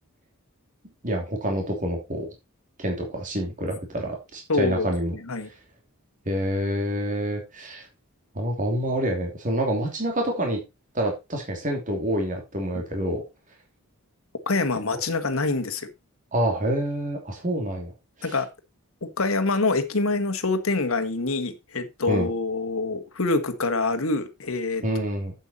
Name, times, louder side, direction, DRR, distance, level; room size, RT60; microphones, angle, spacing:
voice 1, 1.0-2.3 2.8-5.1 6.3-7.8 8.3-10.6 10.9-13.2 14.9-15.0 16.3-17.9 22.1-22.3 24.8-25.3, right 1 dB, 35° right, 2.9 m, -27 dB
voice 2, 4.5-5.5 14.5-15.9 18.2-18.5 19.2-24.8, left 3 dB, 70° left, 1.5 m, -25 dB
8.2 x 8.1 x 4.2 m
head